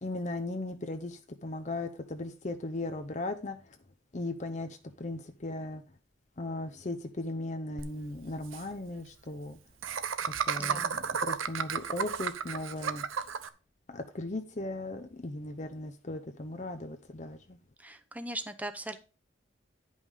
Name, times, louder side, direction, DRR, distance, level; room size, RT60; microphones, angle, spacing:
voice 1, 0.0-3.8 4.1-5.8 6.4-9.6 10.3-13.0 13.9-17.6, left 2 dB, 35° left, 0.6 m, -37 dB
Laughter, 7.8-7.9 8.1-8.2 8.4-8.6 9.8-13.5, right 7 dB, 85° right, 0.7 m, -32 dB
voice 2, 10.6-10.9 17.8-19.0, right 1 dB, 10° right, 0.7 m, -39 dB
10.5 x 5.5 x 4.9 m
head